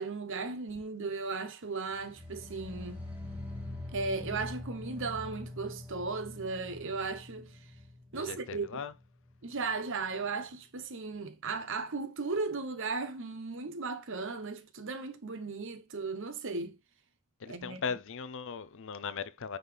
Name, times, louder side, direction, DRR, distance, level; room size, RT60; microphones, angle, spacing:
voice 1, 0.0-3.0 3.9-7.6 8.1-8.6 9.4-16.8 17.5-17.8, right 4 dB, 60° right, 0.9 m, -36 dB
sound 1, 1.9-9.0 9.3-9.8 10.1-10.2, left 2 dB, 10° right, 2.1 m, -44 dB
voice 2, 8.2-8.9 17.4-19.6, left 6 dB, 60° left, 0.6 m, -38 dB
9.4 x 3.9 x 3.4 m
head